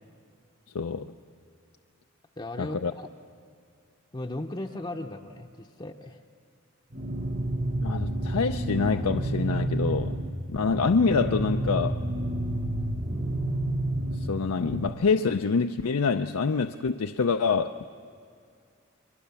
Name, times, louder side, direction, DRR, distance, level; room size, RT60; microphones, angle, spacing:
voice 1, 0.7-1.1 2.6-2.9 7.8-10.2 10.5-12.0 14.1-17.9, left 5 dB, 80° left, 7 dB, 0.5 m, -26 dB
voice 2, 2.4-3.1 4.1-6.2, left 1 dB, 20° left, 1 dB, 0.7 m, -37 dB
sound 1, 6.9-14.9, right 1 dB, 35° right, 1.2 m, -30 dB
30.0 x 23.0 x 7.0 m, 2.3 s
head